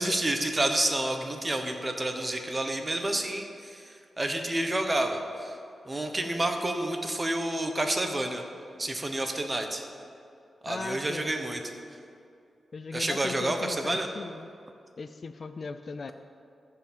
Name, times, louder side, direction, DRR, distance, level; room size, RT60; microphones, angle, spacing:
voice 1, 0.0-5.6 5.8-8.4 8.8-9.8 10.6-11.6 12.9-14.1, right 1 dB, 20° right, 4 dB, 1.1 m, -29 dB
voice 2, 10.7-11.4 12.7-14.5 15.0-16.1, left 4 dB, 50° left, 10 dB, 0.4 m, -38 dB
14.0 x 4.8 x 7.4 m, 2.5 s
wide cardioid pair, 105°, 0 cm